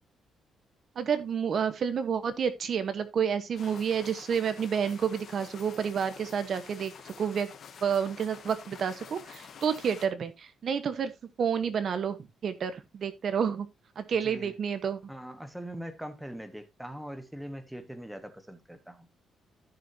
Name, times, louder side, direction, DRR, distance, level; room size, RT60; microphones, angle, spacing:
voice 1, 1.0-7.5 7.8-11.1 11.4-12.2 12.4-13.7 14.0-15.0, right 7 dB, 45° right, 1.1 m, -29 dB
sound 1, 3.6-10.1, left 7 dB, 50° left, 1.5 m, -48 dB
voice 2, 14.2-14.5 15.1-19.1, equal, ahead, 1.1 m, -42 dB
14.5 x 6.2 x 2.7 m
cardioid pair, 160°, 0 cm